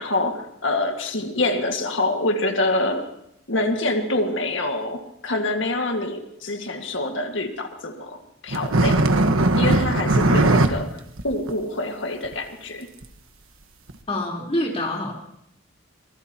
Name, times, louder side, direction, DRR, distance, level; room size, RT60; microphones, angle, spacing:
voice 1, 0.0-3.1 3.5-9.1 9.6-11.0 11.2-12.9, left 2 dB, 65° left, 4 dB, 1.9 m, -26 dB
sound 1, 8.5-10.7 11.1-11.2 11.5-11.6 12.2-12.3 13.0-13.1 13.9-14.0, right 2 dB, 85° right, 1.3 m, -19 dB
voice 2, 14.1-15.1, left 1 dB, 30° left, -1 dB, 3.9 m, -26 dB
25.0 x 19.5 x 2.9 m, 0.76 s
head